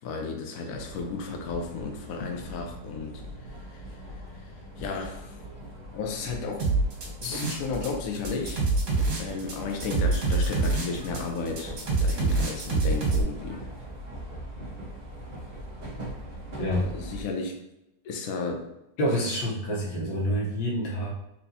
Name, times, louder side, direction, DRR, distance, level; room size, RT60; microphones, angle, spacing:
voice 1, 0.0-3.8 4.1-5.4 5.9-6.7 7.2-8.6 9.2-13.7 16.8-17.6 18.0-18.7, left 4 dB, 65° left, 2 dB, 0.9 m, -34 dB
sound 1, 0.7-17.2, equal, 40° right, 0.6 m, -41 dB
sound 2, 6.6-7.9 8.1-13.2, right 3 dB, 70° right, 1.9 m, -25 dB
voice 2, 19.0-21.1, equal, 85° left, -3 dB, 1.8 m, -27 dB
4.4 x 3.3 x 2.7 m, 0.87 s
omnidirectional pair, 2.1 m